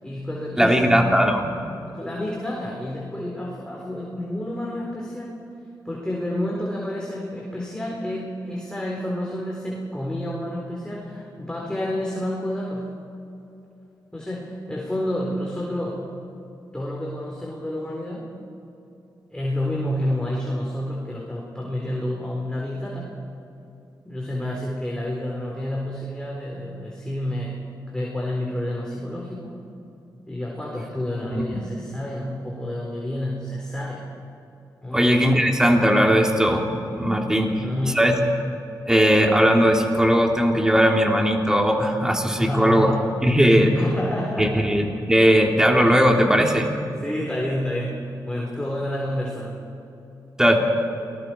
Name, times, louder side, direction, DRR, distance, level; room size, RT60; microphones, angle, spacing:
voice 1, 0.0-1.1 1.9-5.4 5.8-12.9 14.1-16.1 16.7-18.3 19.3-23.1 24.0-27.6 27.9-29.6 30.3-34.0 34.8-35.2 37.4-38.0 42.4-43.1 43.7-44.7 47.0-48.0 48.2-49.6, left 1 dB, 10° left, -3 dB, 4.2 m, -29 dB
voice 2, 0.6-1.6 31.3-31.6 34.9-37.5 37.8-38.1 38.9-42.9 43.2-43.7 44.4-44.8 45.1-46.7 50.4-50.6, equal, 10° right, 1 dB, 3.1 m, -18 dB
28.5 x 20.0 x 4.6 m, 2.8 s
cardioid pair, 80°, 8 cm